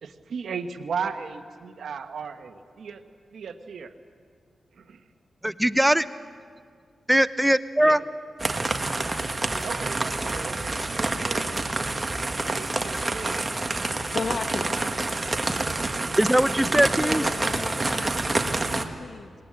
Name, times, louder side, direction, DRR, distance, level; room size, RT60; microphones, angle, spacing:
voice 1, 0.0-3.0 3.3-3.9 4.7-5.0 7.8-8.0 9.6-11.5 12.2-14.1 14.8-14.9, right 6 dB, 80° right, 7 dB, 1.3 m, -36 dB
voice 2, 5.4-6.0 7.1-8.0 16.2-17.2, right 1 dB, 5° right, 14 dB, 0.7 m, -20 dB
sound 1, 8.4-18.8, right 2 dB, 30° right, 1.6 m, -27 dB
voice 3, 14.1-14.8 16.6-19.3, left 4 dB, 65° left, 7 dB, 1.2 m, -35 dB
20.0 x 20.0 x 8.7 m, 2.1 s
cardioid pair, 60°, 0 cm